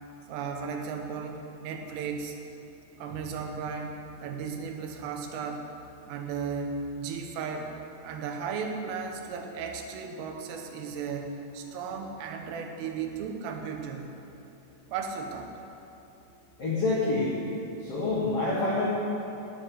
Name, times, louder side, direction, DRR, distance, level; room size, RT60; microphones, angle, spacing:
voice 1, 0.3-2.4 3.0-5.7 6.1-7.7 8.0-14.1 14.9-15.5, right 5 dB, 80° right, 4 dB, 3.5 m, -35 dB
voice 2, 16.6-17.4 17.8-18.9, left 2 dB, 75° left, -7 dB, 1.3 m, -27 dB
11.0 x 7.5 x 8.9 m, 2.8 s
omnidirectional pair, 5.9 m